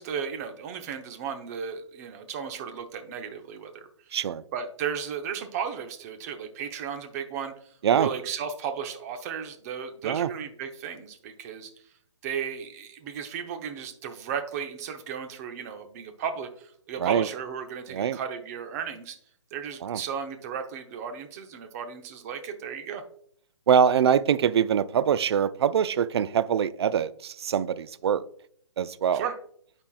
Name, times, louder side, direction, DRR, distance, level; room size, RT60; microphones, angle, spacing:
voice 1, 0.0-3.9 4.5-7.5 7.9-11.7 12.2-19.2 19.5-23.0 29.1-29.3, right 7 dB, 30° right, 6 dB, 0.8 m, -35 dB
voice 2, 4.1-4.4 7.8-8.1 10.0-10.3 17.0-17.3 17.9-18.2 19.8-20.0 23.7-28.2 28.8-29.3, right 8 dB, 55° right, 15 dB, 0.4 m, -24 dB
11.5 x 4.4 x 2.4 m, 0.63 s
hypercardioid pair, 140°, 16 cm